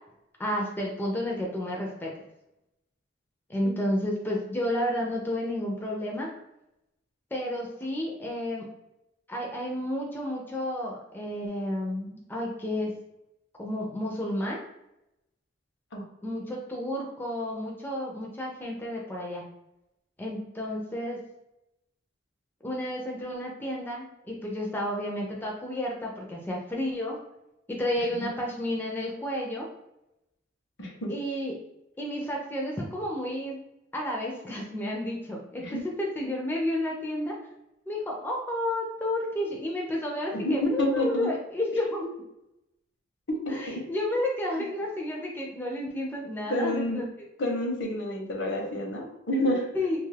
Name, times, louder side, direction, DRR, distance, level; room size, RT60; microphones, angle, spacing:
voice 1, 0.4-2.2 3.5-6.3 7.3-8.7 9.3-12.9 13.6-14.6 16.2-19.4 20.2-21.2 22.6-27.2 27.7-29.7 31.1-31.6 32.0-33.6 33.9-37.4 37.9-42.0 43.5-47.0 49.7-50.1, left 1 dB, 10° left, -2 dB, 0.4 m, -31 dB
voice 2, 30.8-31.1 35.6-35.8 40.3-41.3 42.0-42.1 43.3-44.2 44.5-44.6 46.5-47.0 47.4-49.7, left 1 dB, 70° left, 1 dB, 0.7 m, -29 dB
2.6 x 2.3 x 3.2 m, 0.89 s
head